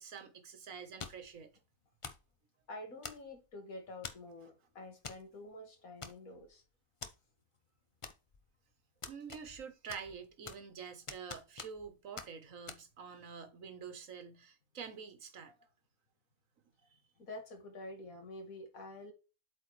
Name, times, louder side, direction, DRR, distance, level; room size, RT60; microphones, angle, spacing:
voice 1, 0.0-1.5 9.1-15.5 16.9-17.0, right 6 dB, 60° right, 1.5 m, -47 dB
sound 1, 1.0-1.3 2.0-2.3 3.0-3.5 4.0-4.3 5.0-5.2 5.5-5.6 6.0-6.5 7.0-7.1 8.0-8.5 9.0-9.6 9.9-10.7 11.1-11.9 12.2-12.3 12.7-12.8, left 4 dB, 40° left, 0.4 m, -46 dB
voice 2, 2.7-6.6 17.2-19.1, left 2 dB, 65° left, 2.2 m, -48 dB
8.1 x 4.4 x 3.2 m
omnidirectional pair, 1.6 m